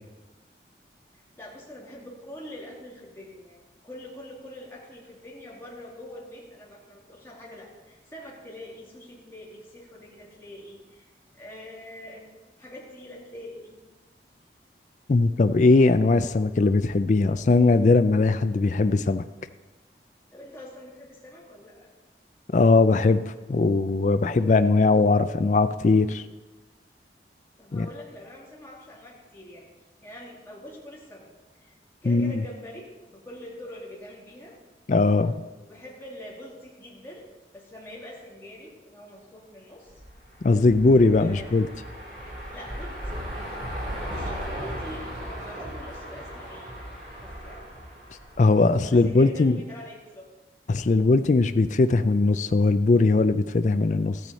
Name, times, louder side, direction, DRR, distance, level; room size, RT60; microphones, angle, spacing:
voice 1, 1.1-12.3 12.6-13.8 20.3-21.9 27.6-29.7 30.0-31.3 31.6-31.7 32.0-34.5 35.7-37.3 37.5-39.9 41.0-41.5 42.5-43.2 43.7-46.8 47.2-47.7 48.8-50.2, left 1 dB, 15° left, -4 dB, 2.4 m, -44 dB
voice 2, 15.1-19.2 22.5-26.2 27.7-27.9 32.1-32.3 34.9-35.4 40.4-41.7 48.4-49.6 50.7-54.2, left 3 dB, 40° left, 10 dB, 0.4 m, -20 dB
sound 1, 39.9-49.1, equal, 50° right, 3.4 m, -37 dB
13.5 x 9.2 x 4.2 m, 1.2 s
head